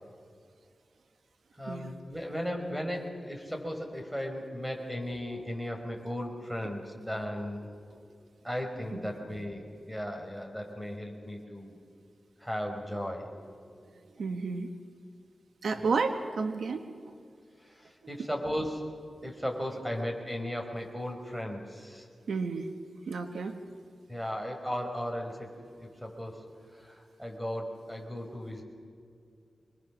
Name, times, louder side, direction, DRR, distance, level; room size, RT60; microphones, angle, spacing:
voice 1, 1.6-8.0 8.4-11.8 12.4-13.6 14.2-14.3 15.7-16.0 17.6-22.1 24.1-25.5 25.8-26.4 26.7-28.6, equal, 5° right, 3 dB, 4.8 m, -36 dB
voice 2, 14.2-14.7 15.6-16.8 22.3-22.7 23.1-23.5, right 4 dB, 90° right, 6 dB, 1.4 m, -31 dB
25.5 x 21.5 x 6.3 m, 2.3 s
cardioid pair, 60°, 0 cm